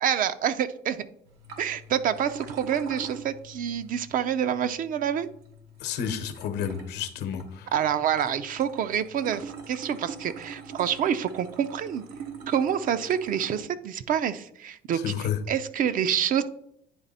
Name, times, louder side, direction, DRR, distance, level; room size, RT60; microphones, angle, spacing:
voice 1, 0.0-1.1 1.6-5.3 7.7-12.0 12.5-16.4, right 9 dB, 55° right, 12 dB, 0.5 m, -27 dB
sound 1, 1.3-13.6, right 4 dB, 90° right, 1.2 m, -44 dB
voice 2, 5.8-7.7 15.0-15.4, left 8 dB, 80° left, 9 dB, 0.9 m, -30 dB
9.5 x 3.3 x 4.1 m, 0.73 s
cardioid pair, 110°, 17 cm